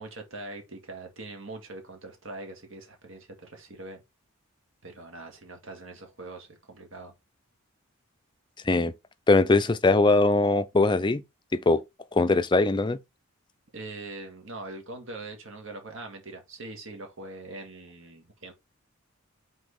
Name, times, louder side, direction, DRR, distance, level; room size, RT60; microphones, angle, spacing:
voice 1, 0.0-4.0 4.8-7.1 13.7-18.5, right 2 dB, 60° right, 1.9 m, -42 dB
voice 2, 9.3-11.2 11.5-11.8 12.1-13.0, left 3 dB, 20° left, 0.4 m, -21 dB
6.2 x 3.8 x 4.9 m
head